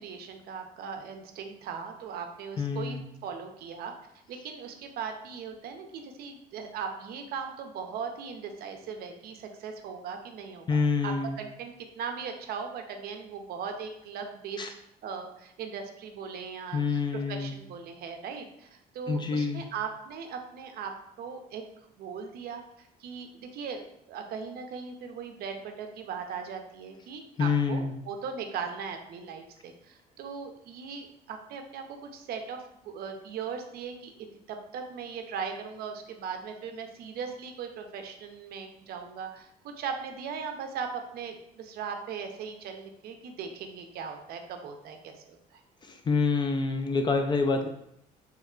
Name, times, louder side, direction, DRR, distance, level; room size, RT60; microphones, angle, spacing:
voice 1, 0.0-3.9 4.3-14.6 15.0-21.6 22.0-22.6 23.0-23.8 24.1-32.6 32.8-45.6, right 6 dB, 65° right, 5 dB, 0.5 m, -39 dB
voice 2, 2.6-3.0 10.7-11.4 14.6-14.7 16.7-17.6 19.1-19.6 27.4-27.9 45.9-47.7, left 4 dB, 25° left, 6 dB, 0.3 m, -27 dB
3.0 x 2.2 x 3.6 m, 0.77 s
cardioid pair, 110°, 17 cm